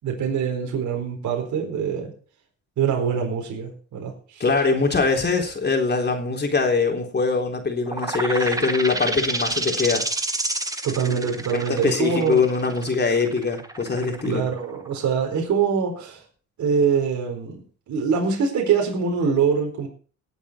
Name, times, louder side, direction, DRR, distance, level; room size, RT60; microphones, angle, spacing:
voice 1, 0.0-2.1 2.8-4.4 10.8-12.4 14.3-16.2 16.6-19.9, right 6 dB, 70° right, 1 dB, 4.4 m, -24 dB
voice 2, 4.4-10.1 11.7-14.4, left 4 dB, 35° left, 3 dB, 3.8 m, -22 dB
sound 1, 7.9-15.2, right 2 dB, 10° right, 1.8 m, -29 dB
18.5 x 8.1 x 4.5 m, 0.40 s
cardioid pair, 90°, 30 cm